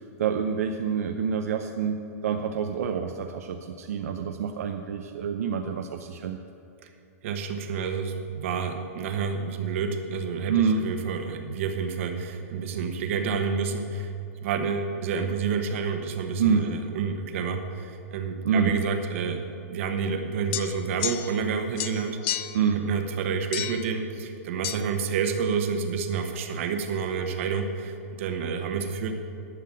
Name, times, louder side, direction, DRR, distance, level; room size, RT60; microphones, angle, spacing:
voice 1, 0.2-6.4 10.5-10.8 16.4-16.7 18.4-18.7 22.5-22.8, right 6 dB, 80° right, 5 dB, 0.7 m, -27 dB
voice 2, 7.2-14.1 14.4-19.4 19.7-29.1, right 5 dB, 60° right, 6 dB, 1.2 m, -29 dB
sound 1, 20.5-21.5 21.8-22.7 23.5-23.9 24.6-24.8, left 13 dB, 45° left, 0.5 m, -32 dB
11.0 x 5.8 x 7.7 m, 2.6 s
hypercardioid pair, 145°, 8 cm